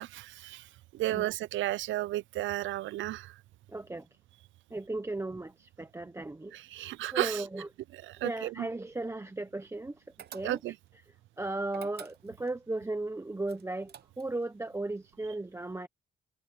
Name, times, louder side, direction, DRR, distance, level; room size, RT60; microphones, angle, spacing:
voice 1, 0.0-3.4 6.5-7.5 7.9-8.7 10.4-10.8, right 15 dB, 75° right, 0.4 m, -33 dB
voice 2, 3.7-4.1 4.7-6.5 7.1-7.7 8.2-9.9 10.3-10.6 11.4-15.9, right 2 dB, 15° right, 1.0 m, -36 dB
sound 1, 10.2-10.9 11.7-12.6 13.5-14.4, right 9 dB, 55° right, 1.0 m, -49 dB
cardioid pair, 90°, 20 cm